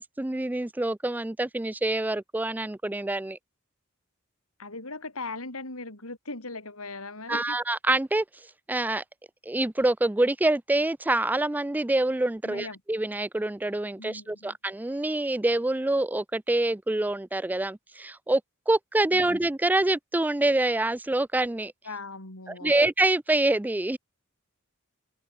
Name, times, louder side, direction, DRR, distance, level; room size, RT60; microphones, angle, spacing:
voice 1, 0.0-3.4 7.3-8.2 8.7-9.0 9.5-18.4 18.7-21.7 22.6-24.0, right 2 dB, 10° right, 0.4 m, -26 dB
voice 2, 4.6-7.6 12.4-12.8 14.0-14.6 19.1-19.4 21.8-22.8, left 3 dB, 80° left, 5.9 m, -39 dB
head